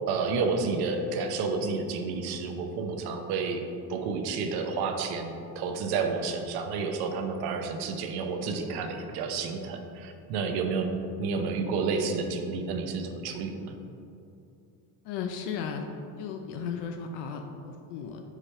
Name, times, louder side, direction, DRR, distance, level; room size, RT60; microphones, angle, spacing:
voice 1, 0.1-13.8, right 4 dB, 70° right, 5 dB, 0.7 m, -30 dB
voice 2, 15.0-15.8 16.2-18.2, left 6 dB, 80° left, 4 dB, 0.6 m, -35 dB
5.0 x 4.9 x 4.3 m, 2.7 s
cardioid pair, 170°, 40 cm